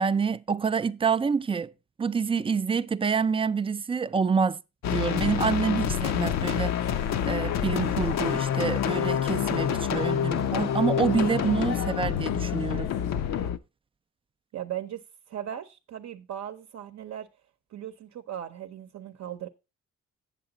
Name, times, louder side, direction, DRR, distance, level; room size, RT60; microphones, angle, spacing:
voice 1, 0.0-1.7 2.0-4.6 4.9-7.0 7.3-12.9, right 5 dB, 20° right, 0.3 m, -27 dB
sound 1, 4.8-13.6, left 9 dB, 65° left, 0.6 m, -27 dB
sound 2, 6.7-13.5, left 7 dB, 85° left, 1.0 m, -40 dB
voice 2, 14.5-15.0 15.3-17.3 17.7-19.5, right 10 dB, 60° right, 0.8 m, -37 dB
7.9 x 7.6 x 3.9 m
cardioid pair, 90°, 30 cm